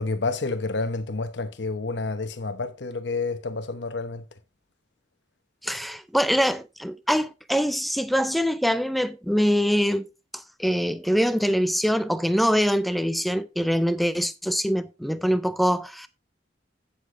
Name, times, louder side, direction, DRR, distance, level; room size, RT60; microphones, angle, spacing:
voice 1, 0.0-4.3, left 3 dB, 70° left, 0.9 m, -29 dB
voice 2, 5.6-16.1, equal, ahead, 0.4 m, -24 dB
16.0 x 6.7 x 2.5 m
head